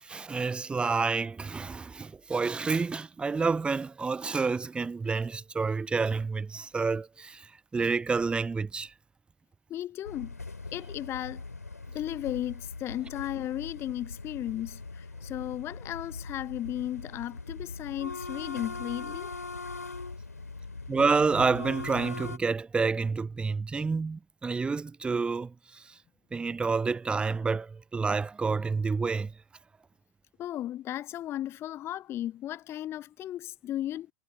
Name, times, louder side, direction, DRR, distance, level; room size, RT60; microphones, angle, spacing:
voice 1, 0.0-8.9 20.9-25.9 26.3-29.3, right 4 dB, 10° right, 0.5 m, -29 dB
voice 2, 9.7-10.3 10.7-11.4 11.9-19.3 30.4-34.1, left 12 dB, 30° left, 0.6 m, -35 dB
sound 1, 10.0-22.4, left 3 dB, 85° left, 3.7 m, -41 dB
figure-of-eight pair, 85°, 8 cm